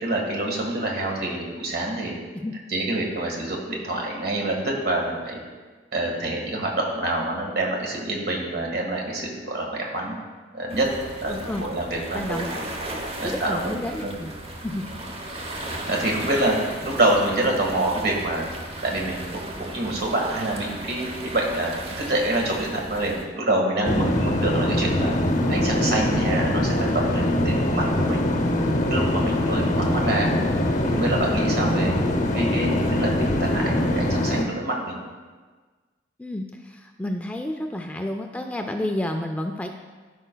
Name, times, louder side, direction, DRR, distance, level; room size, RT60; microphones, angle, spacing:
voice 1, 0.0-2.2 2.7-5.4 5.9-10.1 10.5-10.9 11.2-12.4 13.2-13.7 14.0-14.2 15.9-16.6 16.8-18.4 18.8-19.3 19.6-25.1 25.5-28.3 28.9-30.3 30.8-31.9 32.3-35.0, right 1 dB, 55° right, 0 dB, 1.5 m, -26 dB
sound 1, 10.7-23.3, right 1 dB, 30° right, 0.8 m, -35 dB
voice 2, 11.3-11.6 12.1-12.5 13.2-14.3 14.6-14.9 36.2-39.8, left 1 dB, 10° left, 4 dB, 0.3 m, -30 dB
sound 2, 23.8-34.4, left 1 dB, 40° left, 0.8 m, -23 dB
14.0 x 5.1 x 2.2 m, 1.4 s
head